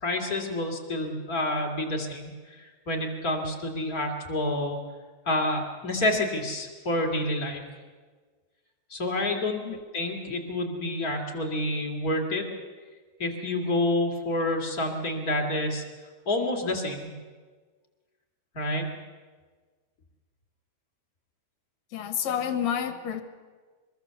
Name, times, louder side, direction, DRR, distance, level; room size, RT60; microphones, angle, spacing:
voice 1, 0.0-4.8 5.3-7.6 8.9-9.6 9.9-12.4 13.2-15.8 16.3-17.1 18.5-18.9, left 1 dB, 30° left, 1 dB, 2.8 m, -28 dB
voice 2, 21.9-23.2, left 9 dB, 70° left, 9 dB, 2.5 m, -29 dB
24.0 x 22.0 x 7.0 m, 1.4 s
omnidirectional pair, 3.3 m